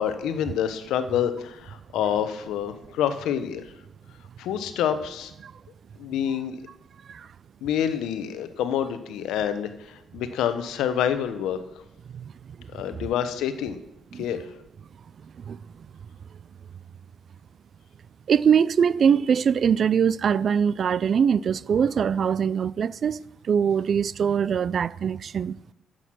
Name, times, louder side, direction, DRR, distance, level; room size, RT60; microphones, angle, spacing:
voice 1, 0.0-3.7 4.4-5.3 6.0-6.6 7.6-11.6 12.7-13.8 14.2-14.5, left 9 dB, 85° left, 0.9 m, -27 dB
voice 2, 18.3-25.6, right 7 dB, 55° right, 0.3 m, -22 dB
9.9 x 7.8 x 6.2 m
cardioid pair, 90°, 0 cm